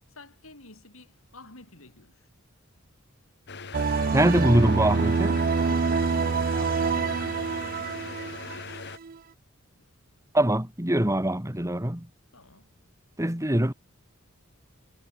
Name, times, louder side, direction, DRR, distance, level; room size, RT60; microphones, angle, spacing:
voice 1, 0.1-2.3 5.6-8.8 9.7-9.8 12.3-12.7, left 3 dB, 80° left, 7.3 m, -50 dB
sound 1, 3.5-9.0, left 4 dB, 55° left, 2.5 m, -40 dB
sound 2, 3.7-9.2, right 4 dB, 45° right, 0.5 m, -26 dB
voice 2, 4.1-5.4 10.3-12.1 13.2-13.7, right 1 dB, 15° right, 2.7 m, -23 dB
head